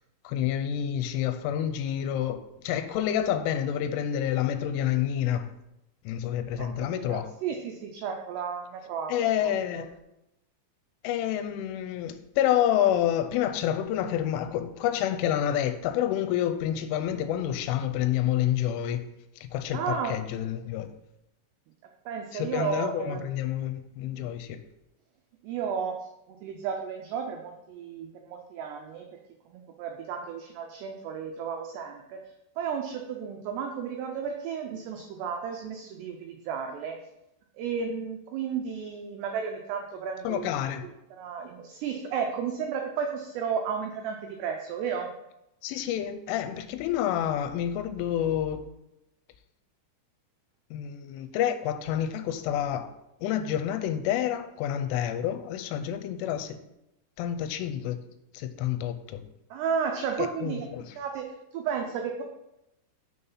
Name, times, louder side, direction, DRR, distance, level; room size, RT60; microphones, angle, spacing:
voice 1, 0.2-5.5 6.1-7.3 9.1-9.9 11.0-19.1 19.4-20.9 22.3-24.6 40.2-40.9 45.6-48.7 50.7-52.9 53.2-56.6 57.2-58.0 58.3-59.2 60.2-60.9, left 10 dB, 85° left, 3.0 m, -28 dB
voice 2, 6.6-9.1 9.4-9.8 19.7-20.2 22.1-23.3 24.2-24.3 25.4-26.0 26.3-29.2 29.5-32.2 32.6-37.0 37.6-40.5 40.8-45.1 59.5-60.7 61.0-61.3 61.5-62.2, right 6 dB, 85° right, 2.3 m, -33 dB
6.4 x 5.5 x 5.5 m
omnidirectional pair, 5.7 m